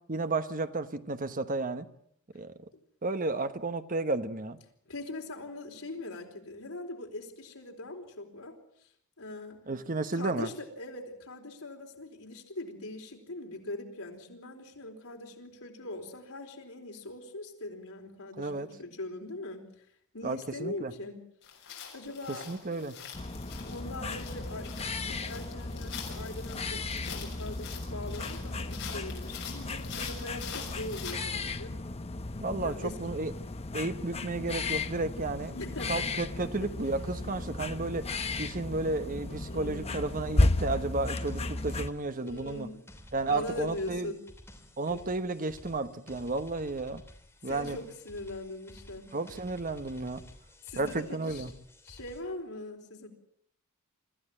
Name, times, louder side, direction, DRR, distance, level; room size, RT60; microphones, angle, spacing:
voice 1, 0.1-1.9 2.3-2.5 3.0-4.6 9.7-10.5 18.4-18.7 20.2-20.9 22.3-23.0 32.4-33.3 33.7-35.5 35.9-38.1 38.4-42.7 43.1-44.1 44.8-47.0 47.4-47.8 49.1-50.2 50.8-51.5, right 3 dB, 40° right, 10 dB, 1.1 m, -32 dB
voice 2, 4.9-8.9 9.2-9.6 10.1-19.9 20.1-21.2 21.9-22.5 23.6-24.7 25.0-31.7 32.6-33.0 35.5-36.2 39.5-40.0 41.5-41.6 42.2-42.8 43.2-44.2 44.9-45.0 47.4-49.1 50.6-51.4 51.8-53.1, left 2 dB, 85° left, 2 dB, 4.3 m, -41 dB
sound 1, 21.4-31.1, left 8 dB, 60° left, 6.5 m, -44 dB
sound 2, 23.1-41.9, left 2 dB, 30° left, 0.9 m, -34 dB
sound 3, 40.9-52.2, left 1 dB, 10° left, 3.1 m, -53 dB
25.0 x 14.5 x 9.0 m, 0.71 s
head